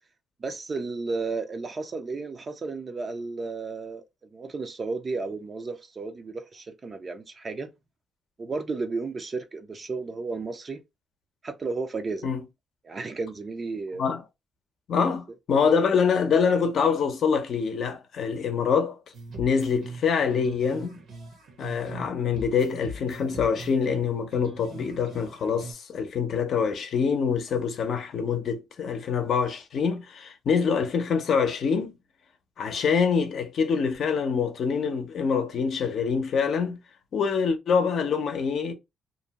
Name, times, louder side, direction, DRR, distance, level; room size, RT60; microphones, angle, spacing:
voice 1, 0.4-4.0 4.3-7.7 8.4-10.8 11.4-12.3 12.8-14.1 15.3-15.4, right 3 dB, 35° right, 0.4 m, -33 dB
voice 2, 14.9-19.0 19.4-21.0 21.6-32.0 32.6-36.8 37.1-38.7, left 6 dB, 60° left, 0.6 m, -25 dB
sound 1, 19.1-22.1 22.3-25.7, right 2 dB, 70° right, 1.0 m, -40 dB
2.6 x 2.1 x 2.8 m
cardioid pair, 90°, 0 cm